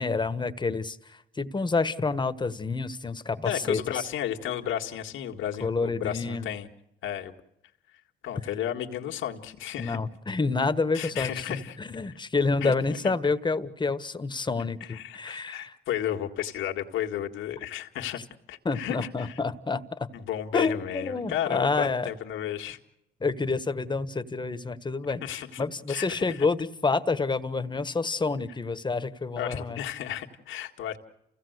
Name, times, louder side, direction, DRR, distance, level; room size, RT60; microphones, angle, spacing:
voice 1, 0.0-4.1 5.6-6.5 9.8-15.8 18.6-20.1 20.5-22.1 23.2-29.8, left 4 dB, 20° left, 11 dB, 1.4 m, -28 dB
voice 2, 3.4-6.7 7.0-7.4 8.2-10.0 10.9-11.8 12.6-13.0 14.9-18.2 18.5-19.4 20.1-22.8 25.2-26.4 29.4-31.0, left 10 dB, 90° left, 3 dB, 1.9 m, -33 dB
29.0 x 17.0 x 8.0 m, 0.84 s
cardioid pair, 90°, 20 cm